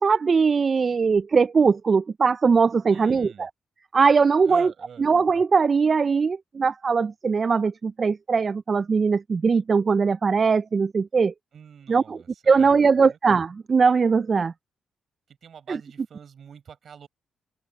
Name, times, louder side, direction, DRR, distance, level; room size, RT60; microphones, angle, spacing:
voice 1, 0.0-3.5 3.9-4.7 5.0-11.3 11.9-12.2 12.5-14.5 15.7-15.8, right 5 dB, 45° right, 0.4 m, -20 dB
voice 2, 2.9-3.5 4.4-5.1 11.5-13.2 15.3-17.1, right 7 dB, 60° right, 7.4 m, -46 dB
supercardioid pair, 60°, 0 cm